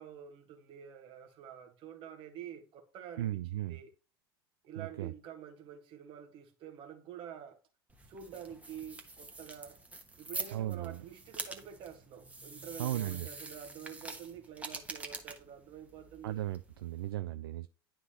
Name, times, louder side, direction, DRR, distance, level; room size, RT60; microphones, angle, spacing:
voice 1, 0.0-3.9 4.6-7.6 8.1-9.8 10.2-16.4, right 9 dB, 40° right, 1.5 m, -48 dB
voice 2, 3.2-3.8 4.8-5.1 10.5-11.0 12.8-13.3 16.2-17.7, right 13 dB, 65° right, 0.4 m, -36 dB
sound 1, 7.9-17.1, right 2 dB, 10° right, 1.1 m, -46 dB
11.0 x 3.7 x 2.9 m
figure-of-eight pair, 75°, 13 cm